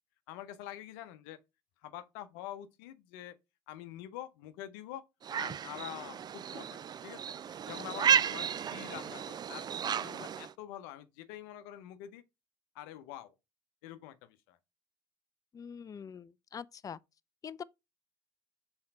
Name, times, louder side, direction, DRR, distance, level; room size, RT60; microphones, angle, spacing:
voice 1, 0.3-1.4 1.8-3.4 3.7-5.0 5.3-7.2 7.7-12.2 12.7-13.3 13.8-14.6, left 12 dB, 75° left, 0.7 m, -46 dB
sound 1, 5.2-10.5, right 8 dB, 35° right, 0.4 m, -33 dB
voice 2, 15.5-17.0 17.4-17.6, left 7 dB, 30° left, 0.4 m, -44 dB
5.7 x 4.4 x 4.3 m
hypercardioid pair, 60°, 12 cm